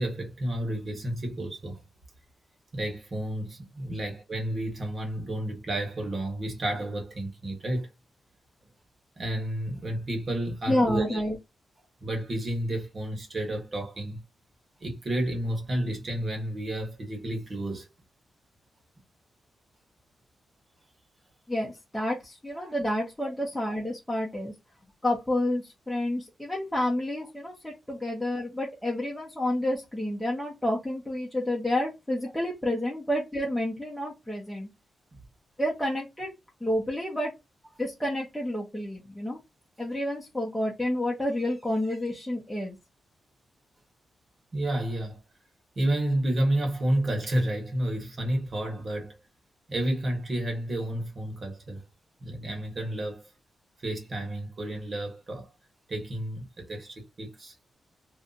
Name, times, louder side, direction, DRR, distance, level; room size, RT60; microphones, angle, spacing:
voice 1, 0.0-1.8 2.7-7.9 9.2-11.2 12.0-14.2 14.8-17.9 22.6-22.7 44.5-45.2 45.7-49.2 49.7-51.8 52.2-53.2 53.8-55.5 55.9-57.5, right 1 dB, 40° right, 1.4 m, -31 dB
voice 2, 10.7-11.4 21.5-24.5 25.0-34.7 35.6-36.3 36.6-37.3 37.8-39.4 39.8-42.8, left 1 dB, 5° left, 0.9 m, -29 dB
2.7 x 2.4 x 3.9 m
wide cardioid pair, 115°, 0 cm